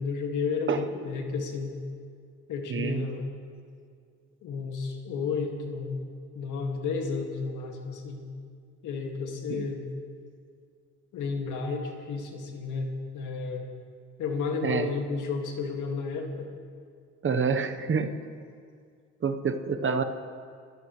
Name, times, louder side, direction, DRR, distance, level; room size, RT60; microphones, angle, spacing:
voice 1, 0.0-1.8 2.5-3.3 4.4-6.0 6.3-8.2 8.8-9.8 11.1-13.7 14.2-16.5, left 4 dB, 80° left, 2 dB, 2.2 m, -32 dB
voice 2, 2.7-3.1 9.5-9.7 14.6-14.9 17.2-18.1 19.2-20.0, right 5 dB, 40° right, 8 dB, 1.1 m, -27 dB
28.5 x 15.0 x 3.3 m, 2.2 s
cardioid pair, 90°, 30 cm